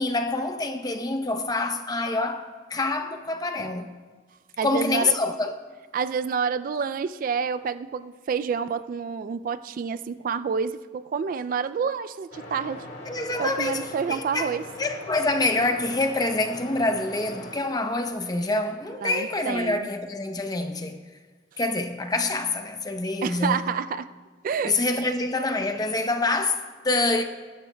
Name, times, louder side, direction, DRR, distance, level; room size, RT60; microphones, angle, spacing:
voice 1, 0.0-3.9 4.6-5.5 13.1-13.8 14.1-14.5 14.8-21.0 21.6-23.6 24.6-27.2, left 2 dB, 20° left, 0.7 m, -26 dB
voice 2, 4.6-5.1 5.9-12.9 13.4-14.6 19.0-19.9 23.2-24.1 24.4-24.8, right 6 dB, 50° right, 0.3 m, -28 dB
sound 1, 12.3-17.6, left 1 dB, 65° left, 2.0 m, -41 dB
21.0 x 11.5 x 2.2 m
head